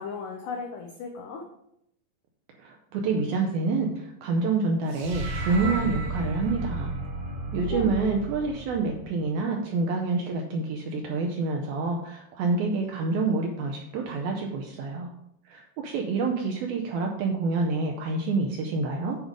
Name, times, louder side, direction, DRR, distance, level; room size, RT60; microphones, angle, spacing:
voice 1, 0.0-1.4 7.7-8.3, left 5 dB, 90° left, 1 dB, 1.8 m, -36 dB
voice 2, 2.6-6.9 7.5-15.1 15.5-19.2, right 3 dB, 80° right, 2 dB, 2.3 m, -27 dB
Magic Spell Sorcery Enchant Appear Ghost, 4.9-9.3, right 2 dB, 65° right, 2.3 m, -33 dB
8.2 x 4.8 x 5.1 m, 0.76 s
omnidirectional pair, 4.9 m